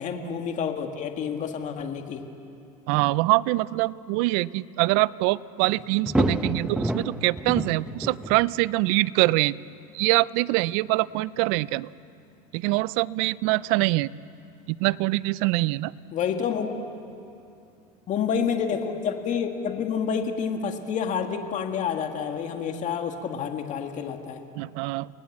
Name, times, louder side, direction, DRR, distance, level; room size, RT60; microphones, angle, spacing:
voice 1, 0.0-2.2 16.1-16.7 18.1-24.4, left 7 dB, 40° left, 5 dB, 1.9 m, -28 dB
voice 2, 2.9-9.5 9.9-11.9 12.5-14.1 14.7-15.9 24.6-25.1, right 20 dB, 65° right, 20 dB, 0.5 m, -24 dB
sound 1, 5.7-8.8 10.0-10.1 22.1-22.2, right 1 dB, 5° right, 0.9 m, -29 dB
29.0 x 19.0 x 7.3 m, 2.6 s
supercardioid pair, 120°, 19 cm